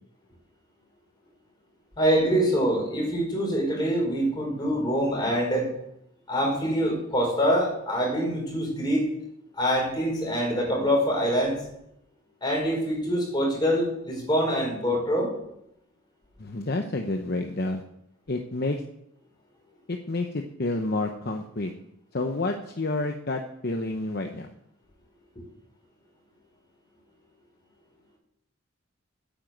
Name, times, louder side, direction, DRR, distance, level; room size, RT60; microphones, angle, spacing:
voice 1, 2.0-5.7 6.3-9.1 9.5-11.6 12.4-15.3, equal, 20° left, -2 dB, 5.1 m, -25 dB
voice 2, 16.4-17.8 18.3-18.8 19.9-21.7 22.1-24.5, left 2 dB, 50° left, 4 dB, 0.9 m, -29 dB
9.7 x 9.0 x 7.7 m, 0.78 s
head